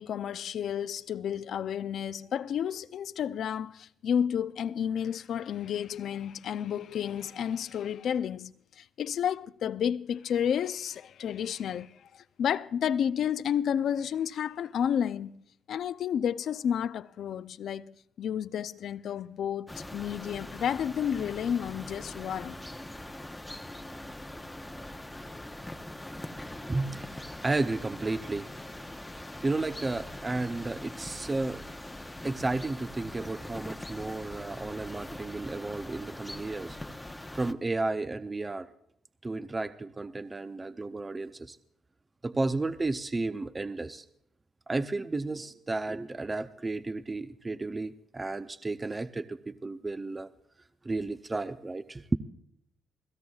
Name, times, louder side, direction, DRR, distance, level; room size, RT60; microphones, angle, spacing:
voice 1, 0.0-22.7, left 8 dB, 65° left, 0.5 m, -31 dB
sound 1, 19.7-37.5, left 1 dB, 10° left, 0.8 m, -42 dB
voice 2, 26.7-28.5 29.1-31.6 32.2-36.8 37.3-38.7 39.2-41.6 42.2-44.0 44.7-50.3 50.8-52.2, right 2 dB, 25° right, 0.6 m, -33 dB
29.5 x 16.5 x 2.4 m
cardioid pair, 90°, 0 cm